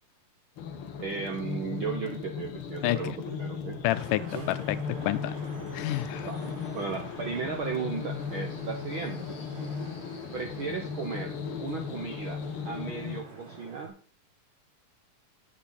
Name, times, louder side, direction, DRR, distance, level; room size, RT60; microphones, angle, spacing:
sound 1, 0.6-13.2, left 6 dB, 65° left, 1.4 m, -37 dB
voice 1, 1.0-3.8 4.2-4.5 6.1-6.4 6.7-9.4 10.3-14.0, right 5 dB, 75° right, 4 dB, 1.1 m, -36 dB
voice 2, 2.8-3.2 3.8-4.8 5.0-5.4 5.7-6.3, left 15 dB, 85° left, 13 dB, 2.3 m, -29 dB
Vehicle horn car horn honking / Traffic noise roadway noise, 3.9-13.9, right 3 dB, 50° right, 3.5 m, -47 dB
9.9 x 9.0 x 4.2 m, 0.42 s
omnidirectional pair, 3.7 m